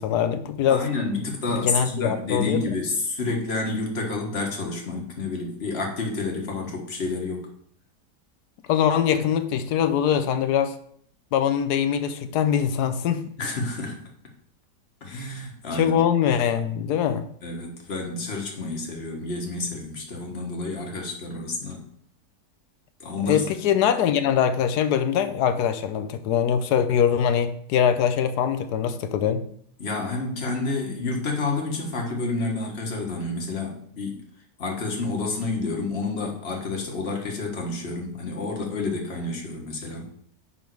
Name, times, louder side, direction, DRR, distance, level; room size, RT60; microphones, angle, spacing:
voice 1, 0.0-0.9 1.5-2.7 8.7-10.8 11.3-13.3 15.7-17.3 23.3-29.4, left 8 dB, 70° left, 1.1 m, -23 dB
voice 2, 0.7-7.5 13.4-14.1 15.0-16.0 17.4-21.8 23.0-23.5 29.8-34.2 34.6-40.1, left 3 dB, 40° left, 1.6 m, -29 dB
10.0 x 3.6 x 4.6 m
omnidirectional pair, 1.9 m